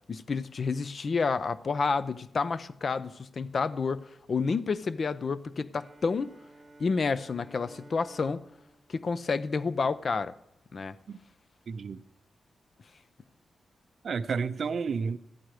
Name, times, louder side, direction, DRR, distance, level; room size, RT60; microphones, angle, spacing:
voice 1, 0.1-6.3 6.8-8.5 8.9-10.3 10.7-11.0, left 4 dB, 40° left, 0.5 m, -29 dB
Bowed string instrument, 5.7-9.8, right 2 dB, 20° right, 1.1 m, -54 dB
voice 2, 11.7-12.0 14.0-15.2, right 5 dB, 50° right, 0.5 m, -31 dB
14.0 x 10.5 x 4.8 m
wide cardioid pair, 170°, 0 cm